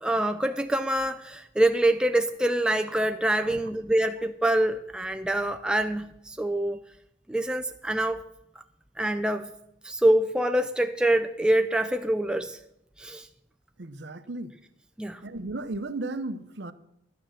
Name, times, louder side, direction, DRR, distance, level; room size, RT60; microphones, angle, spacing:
voice 1, 0.0-6.8 7.3-8.2 9.0-9.5 9.8-12.6 13.0-13.3 15.0-15.2, right 1 dB, 5° right, 0.4 m, -25 dB
voice 2, 13.8-14.6 15.2-16.7, right 2 dB, 60° right, 0.7 m, -35 dB
11.5 x 8.9 x 6.4 m
head